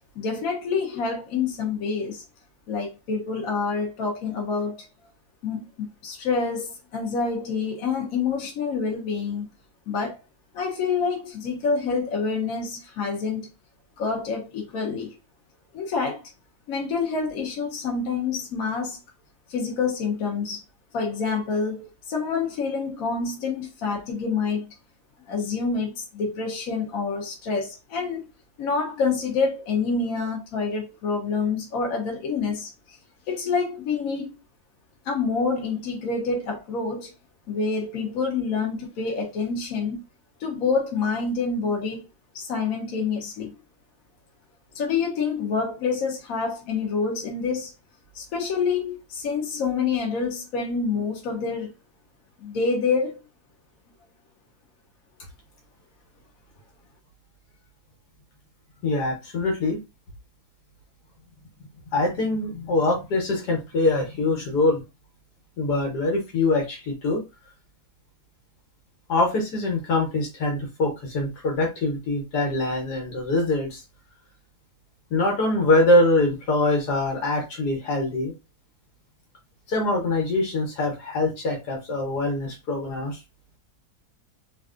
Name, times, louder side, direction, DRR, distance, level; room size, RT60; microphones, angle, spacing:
voice 1, 0.1-2.2 2.7-4.9 5.4-9.5 9.9-10.2 10.5-13.5 14.0-15.2 15.7-16.2 16.7-19.0 19.5-20.6 20.9-24.7 25.3-28.3 28.6-33.0 33.3-34.3 35.0-37.1 37.5-40.0 40.4-42.1 42.3-43.6 44.7-47.7 48.1-51.7 52.4-53.2, left 5 dB, 65° left, 1.2 m, -27 dB
voice 2, 58.8-59.8 61.9-64.8 65.6-67.2 69.1-73.8 75.1-78.3 79.7-83.2, left 2 dB, 80° left, 1.6 m, -23 dB
3.4 x 2.5 x 2.4 m
omnidirectional pair, 1.7 m